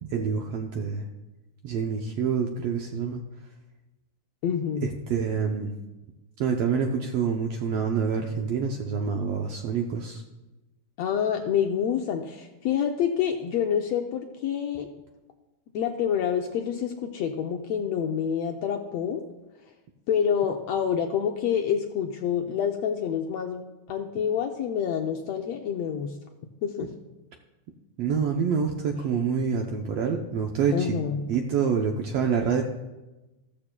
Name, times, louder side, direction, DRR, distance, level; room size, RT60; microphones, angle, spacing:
voice 1, 0.0-1.0 1.6-3.2 4.8-5.7 6.4-10.2 28.0-31.0 31.3-32.6, right 6 dB, 75° right, 2 dB, 1.5 m, -27 dB
voice 2, 4.4-4.9 11.0-14.9 15.7-19.2 20.1-26.1 26.6-26.9 30.7-31.3, left 8 dB, 75° left, 3 dB, 1.6 m, -27 dB
14.5 x 13.0 x 2.2 m, 1.1 s
omnidirectional pair, 3.5 m